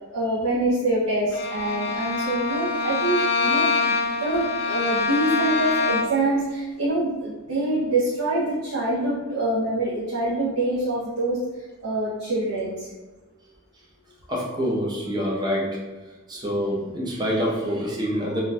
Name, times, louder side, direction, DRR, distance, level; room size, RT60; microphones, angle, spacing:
voice 1, 0.1-11.4 11.8-12.9, right 2 dB, 85° right, -7 dB, 0.6 m, -25 dB
Bowed string instrument, 1.3-6.3, left 4 dB, 50° left, 0.4 m, -25 dB
voice 2, 14.3-15.8 16.3-18.4, equal, 20° right, -3 dB, 0.6 m, -26 dB
2.6 x 2.2 x 3.1 m, 1.2 s
head